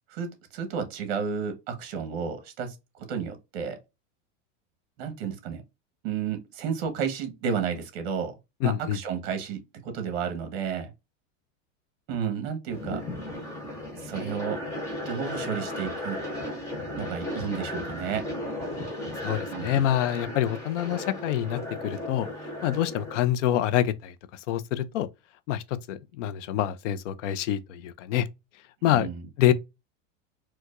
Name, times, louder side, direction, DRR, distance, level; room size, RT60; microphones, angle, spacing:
voice 1, 0.1-2.7 3.1-3.8 5.0-5.6 6.0-10.9 12.1-13.0 14.0-14.6 15.0-16.2 17.0-18.3 19.5-19.8 28.8-29.2, right 7 dB, 50° right, 1.1 m, -32 dB
voice 2, 8.6-9.0 19.2-22.3 22.6-25.1 25.5-28.3 28.8-29.1 29.4-29.5, left 12 dB, 70° left, 0.5 m, -26 dB
sound 1, 12.7-23.2, left 1 dB, 10° left, 0.5 m, -35 dB
4.6 x 2.2 x 2.4 m
supercardioid pair, 175°, 38 cm